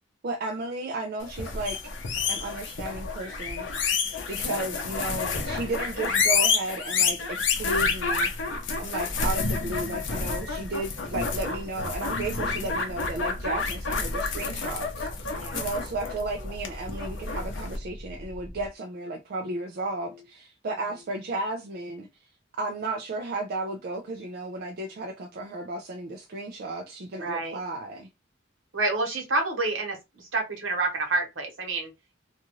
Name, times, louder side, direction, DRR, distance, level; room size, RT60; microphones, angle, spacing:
voice 1, 0.2-1.8 2.3-3.7 4.3-8.3 8.8-22.1 22.6-28.1, right 2 dB, 55° right, 0.4 m, -34 dB
sound 1, 1.3-17.8, left 4 dB, 70° left, 0.6 m, -29 dB
sound 2, 13.0-18.7, left 1 dB, 35° left, 0.7 m, -41 dB
voice 2, 15.3-15.7 27.2-27.6 28.7-31.9, right 2 dB, 80° right, 1.2 m, -28 dB
2.5 x 2.3 x 3.0 m
head